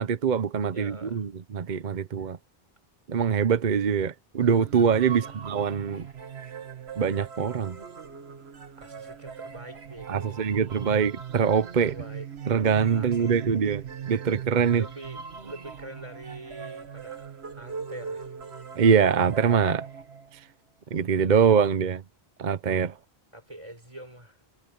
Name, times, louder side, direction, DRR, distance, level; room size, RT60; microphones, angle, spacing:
voice 1, 0.0-2.4 3.1-6.1 7.0-7.8 10.1-11.9 12.5-14.8 18.8-19.8 20.9-22.0 22.4-22.9, right 7 dB, 50° right, 0.9 m, -23 dB
voice 2, 0.6-1.3 5.1-5.4 8.8-10.5 11.8-12.5 12.9-13.5 14.7-18.3 23.3-24.4, right 1 dB, 30° right, 5.0 m, -45 dB
sound 1, 4.4-20.4, right 7 dB, 85° right, 1.6 m, -40 dB
omnidirectional pair, 1.0 m